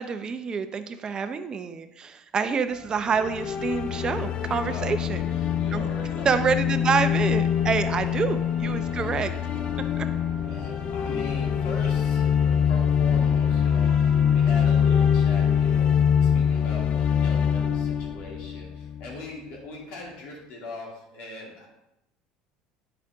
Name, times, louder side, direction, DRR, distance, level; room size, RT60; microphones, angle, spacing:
voice 1, 0.0-5.2 5.7-5.9 6.2-9.3 10.0-10.1, right 5 dB, 30° right, 9 dB, 0.7 m, -27 dB
sound 1, 2.7-17.7, right 3 dB, 65° right, 1.2 m, -45 dB
sound 2, 3.1-19.2, left 8 dB, 45° left, 0.4 m, -24 dB
voice 2, 4.6-4.9 5.5-6.4 7.6-8.2 10.4-21.7, left 2 dB, 70° left, -3 dB, 2.7 m, -41 dB
9.2 x 5.2 x 3.5 m, 0.88 s
supercardioid pair, 105°, 3 cm